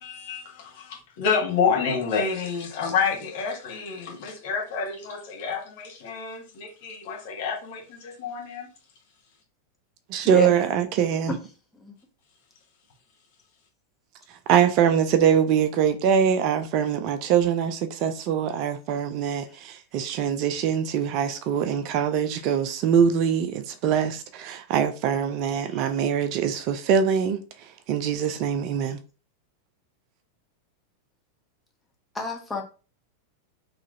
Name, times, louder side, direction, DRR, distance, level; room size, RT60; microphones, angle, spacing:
voice 1, 0.0-8.7, left 6 dB, 50° left, 1.2 m, -28 dB
voice 2, 10.1-11.3 14.3-29.0, right 8 dB, 40° right, 0.4 m, -23 dB
voice 3, 32.1-32.6, left 4 dB, 10° left, 1.1 m, -31 dB
3.8 x 3.0 x 2.6 m
figure-of-eight pair, 90°, 0 cm